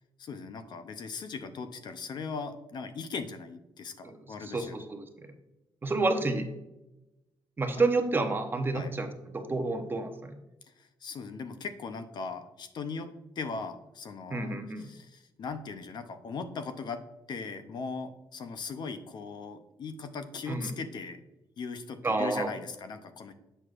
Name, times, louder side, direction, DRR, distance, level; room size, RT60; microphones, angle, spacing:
voice 1, 0.2-4.8 7.8-7.9 8.7-8.9 10.8-17.0 17.3-21.2 21.6-23.3, left 4 dB, 55° left, 9 dB, 0.6 m, -39 dB
voice 2, 4.0-5.1 5.8-6.5 7.6-9.1 9.3-10.3 14.3-14.9 20.5-20.7 22.0-22.5, right 3 dB, 25° right, 6 dB, 0.8 m, -29 dB
7.9 x 6.2 x 2.4 m, 0.95 s
cardioid pair, 120°, 9 cm